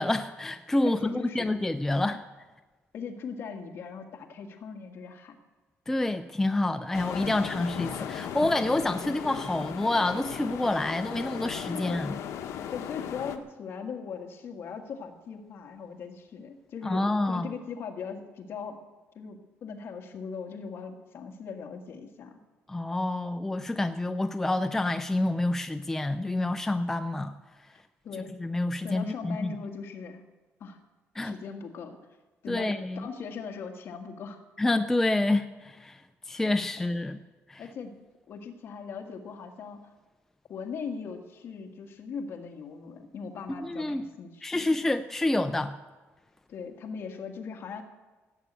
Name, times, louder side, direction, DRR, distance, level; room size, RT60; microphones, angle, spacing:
voice 1, 0.0-2.2 5.9-12.2 16.8-17.5 22.7-27.3 28.4-29.5 31.2-31.3 32.5-33.1 34.6-36.0 36.3-37.2 37.5-37.6 43.6-44.0 44.4-45.8, left 2 dB, 5° left, 8 dB, 0.4 m, -28 dB
voice 2, 0.8-1.5 1.9-2.2 2.9-5.4 11.7-12.0 12.4-18.8 19.2-22.4 27.7-28.3 28.8-30.2 30.6-30.8 31.2-32.0 32.4-34.4 37.6-38.0 38.3-39.9 40.5-44.7 46.5-47.8, left 5 dB, 50° left, 3 dB, 1.8 m, -40 dB
sound 1, 6.9-13.4, left 9 dB, 75° left, 1.1 m, -37 dB
16.0 x 8.1 x 8.7 m, 1.2 s
cardioid pair, 160°, 5 cm